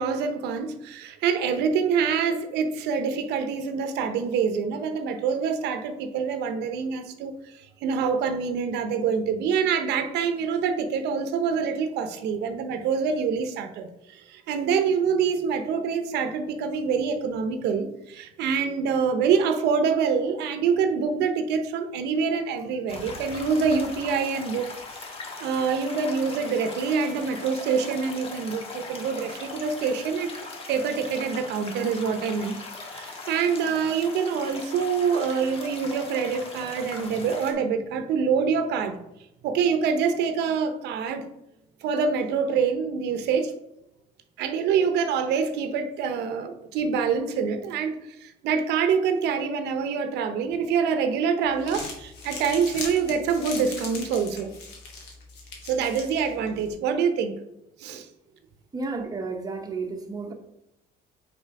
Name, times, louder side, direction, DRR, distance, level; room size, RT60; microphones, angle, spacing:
voice 1, 0.0-24.7 25.0-25.1 25.4-30.3 30.7-32.6 32.9-39.0 39.4-41.3 41.8-43.5 44.4-54.5 55.7-57.4 57.8-58.1, right 6 dB, 80° right, 0.8 m, -26 dB
sound 1, 22.9-37.5, left 3 dB, 35° left, 1.4 m, -40 dB
Crumpling crinkling, 51.4-56.7, left 3 dB, 85° left, 1.7 m, -40 dB
voice 2, 58.7-60.3, right 3 dB, 20° right, 0.9 m, -32 dB
5.6 x 4.4 x 4.7 m
cardioid pair, 110°, 17 cm